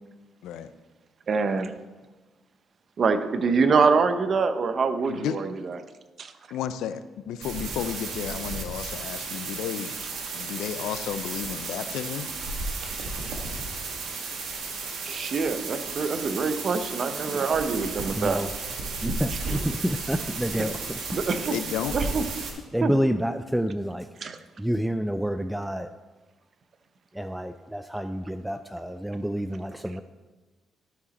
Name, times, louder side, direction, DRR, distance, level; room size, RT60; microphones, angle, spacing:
voice 1, 1.3-1.7 3.0-5.8 6.2-6.3 13.0-13.1 15.0-18.4 21.1-21.5 21.9-22.2 22.8-22.9 24.2-24.4, right 4 dB, 50° right, 10 dB, 0.7 m, -25 dB
voice 2, 6.5-9.9 10.3-12.3 21.5-22.0, left 9 dB, 85° left, 12 dB, 0.4 m, -32 dB
sound 1, 7.4-22.5, right 4 dB, 80° right, 1.6 m, -34 dB
voice 3, 18.2-18.5 19.0-21.0 22.7-24.1 24.6-25.9 27.1-30.0, equal, 5° right, 10 dB, 0.3 m, -28 dB
12.5 x 4.9 x 4.1 m, 1.2 s
cardioid pair, 90°, 0 cm